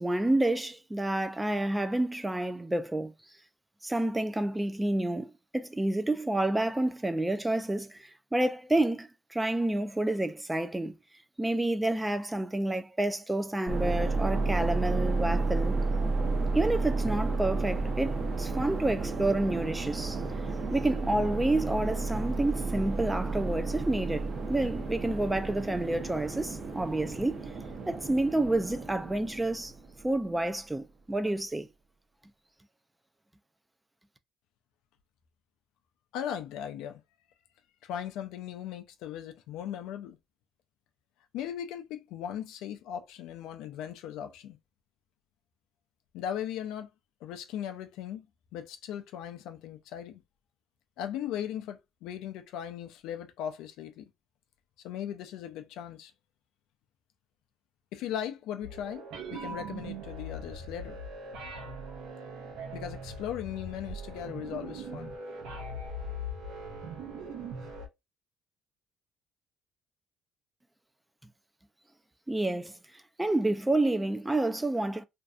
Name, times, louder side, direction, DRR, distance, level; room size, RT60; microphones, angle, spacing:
voice 1, 0.0-3.1 3.8-11.0 11.4-15.8 16.5-20.2 20.7-27.5 27.9-29.7 30.0-31.7 72.3-72.8 73.2-75.0, right 1 dB, 10° right, 0.3 m, -29 dB
sound 1, 13.7-30.1, right 3 dB, 40° right, 0.6 m, -32 dB
voice 2, 36.1-37.0 37.8-40.2 41.3-44.6 46.1-46.9 47.2-48.3 48.5-50.2 51.0-54.1 54.8-56.1 57.9-61.0 62.7-65.1, left 10 dB, 80° left, 0.4 m, -38 dB
sound 2, 58.6-67.9, right 1 dB, 75° right, 0.7 m, -40 dB
2.6 x 2.2 x 2.4 m
cardioid pair, 90°, 0 cm